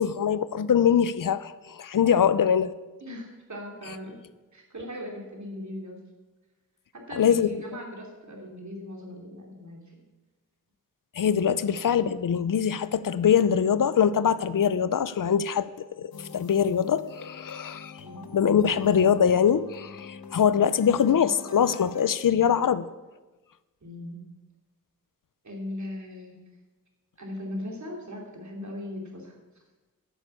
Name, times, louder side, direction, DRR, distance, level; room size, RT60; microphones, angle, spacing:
voice 1, 0.0-2.7 7.2-7.5 11.2-15.7 16.0-17.9 18.3-22.9, left 8 dB, 65° left, 0.6 m, -23 dB
voice 2, 3.0-4.2 4.5-6.0 6.9-10.0 11.6-11.7 18.0-18.3 23.8-24.2 25.4-26.4 27.2-29.4, left 1 dB, 55° right, 3.1 m, -39 dB
sound 1, 16.1-22.1, left 5 dB, 90° left, 0.9 m, -44 dB
11.5 x 8.1 x 8.3 m
wide cardioid pair, 100°, 35 cm